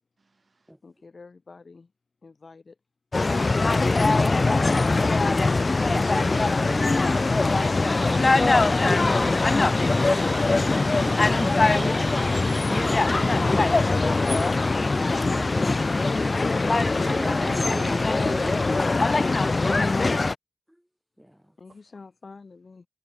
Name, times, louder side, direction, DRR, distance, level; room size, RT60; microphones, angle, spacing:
voice 1, 0.8-1.9 2.2-2.8 21.6-22.9, left 4 dB, 70° left, 6.3 m, -48 dB
sound 1, 3.1-20.3, left 3 dB, 55° left, 0.4 m, -22 dB
voice 2, 5.7-7.2 11.6-12.4 17.1-18.8, right 3 dB, 65° right, 3.2 m, -38 dB
sound 2, 7.4-18.9, right 2 dB, 40° right, 0.9 m, -42 dB
voice 3, 9.0-11.6 12.7-13.7 15.3-17.1 20.7-20.8 21.2-21.5, equal, 5° right, 1.4 m, -39 dB
cardioid pair, 50°, 0 cm